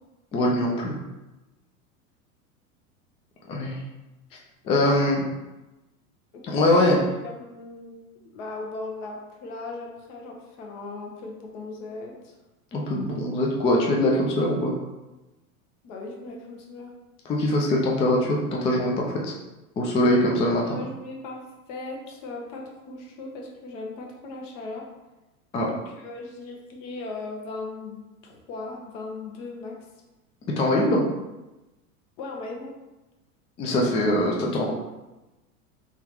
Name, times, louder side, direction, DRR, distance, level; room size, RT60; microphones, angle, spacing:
voice 1, 0.3-0.9 3.5-3.8 4.7-5.2 6.5-7.0 12.7-14.7 17.3-19.3 19.8-20.8 25.5-25.7 30.6-31.0 33.6-34.7, left 1 dB, 15° left, -2 dB, 0.3 m, -22 dB
voice 2, 4.6-5.1 6.5-8.0 8.3-12.3 15.8-16.9 20.6-21.4 21.7-24.9 25.6-29.7 32.2-32.7, left 3 dB, 55° left, 0 dB, 1.1 m, -37 dB
3.7 x 3.3 x 3.0 m, 1.0 s
hypercardioid pair, 100°, 44 cm